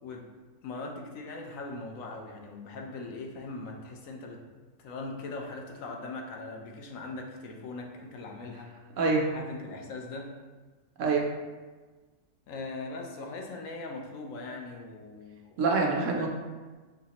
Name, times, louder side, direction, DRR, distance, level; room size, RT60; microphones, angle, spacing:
voice 1, 0.6-4.4 4.8-8.7 9.3-10.3 12.5-15.6 16.2-16.3, left 3 dB, 70° left, 1 dB, 1.0 m, -40 dB
voice 2, 9.0-9.4 11.0-11.3 15.6-16.3, right 4 dB, 65° right, 1 dB, 0.9 m, -25 dB
5.8 x 3.1 x 2.9 m, 1.3 s
omnidirectional pair, 1.5 m